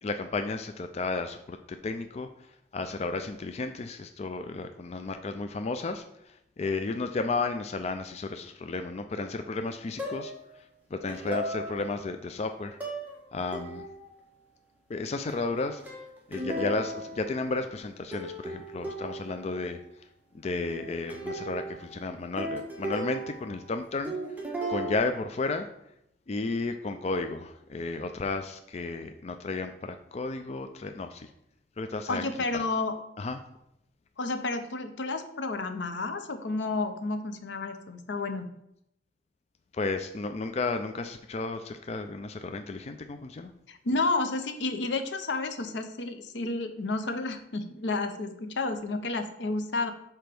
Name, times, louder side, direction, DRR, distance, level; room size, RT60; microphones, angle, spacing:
voice 1, 0.0-2.3 2.7-10.3 10.9-12.8 13.3-13.9 14.9-15.8 16.3-19.8 20.4-24.2 24.7-25.7 26.3-31.3 31.8-32.3 32.5-32.6 33.2-33.4 39.7-43.5, left 3 dB, 35° left, 7 dB, 0.4 m, -33 dB
sound 1, 10.0-10.5 11.1-12.1 12.8-13.2 13.5-14.1 15.3-17.9 18.1-19.5 20.7-23.8 24.0-25.0, right 1 dB, 10° right, 1.3 m, -36 dB
voice 2, 32.1-33.0 34.2-38.5 43.7-49.9, left 3 dB, 85° left, 8 dB, 0.7 m, -31 dB
5.1 x 4.4 x 6.0 m, 0.78 s
head